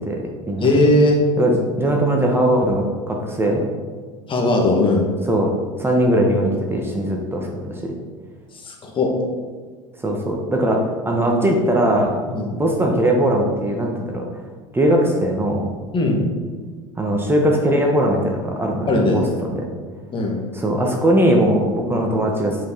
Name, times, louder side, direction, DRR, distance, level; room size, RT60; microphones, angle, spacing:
voice 1, 0.1-0.7 1.4-3.6 5.3-5.5 5.8-7.9 10.0-12.2 12.5-14.2 14.7-15.7 17.0-19.7 20.5-22.6, right 1 dB, 15° right, 0 dB, 1.4 m, -20 dB
voice 2, 0.6-1.2 4.3-5.1 8.6-9.1 12.3-12.5 15.9-16.2 18.9-19.3 20.1-20.4, left 2 dB, 30° left, 0 dB, 2.0 m, -18 dB
8.5 x 5.6 x 4.0 m, 1.5 s
hypercardioid pair, 80°, 16 cm